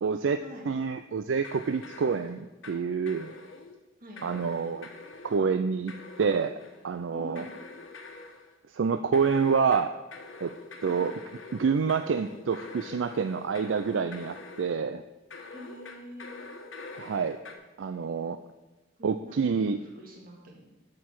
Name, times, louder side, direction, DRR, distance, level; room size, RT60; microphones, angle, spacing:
voice 1, 0.0-3.3 4.2-4.9 5.2-5.9 6.2-6.5 6.8-7.4 8.7-9.9 10.4-10.5 10.8-11.1 11.5-15.0 17.0-17.4 17.8-18.4 19.0-19.8, right 5 dB, 75° right, 10 dB, 0.4 m, -27 dB
sound 1, 1.4-2.8 3.1-3.8 4.2-5.5 5.9-6.9 7.4-8.5 9.1-14.8 15.3-17.5, left 3 dB, 90° left, 1.3 m, -45 dB
voice 2, 4.0-4.4 7.1-7.5 10.9-11.1 15.5-16.4 19.0-20.7, left 1 dB, 50° right, 0 dB, 2.2 m, -46 dB
8.2 x 6.6 x 7.7 m, 1.1 s
head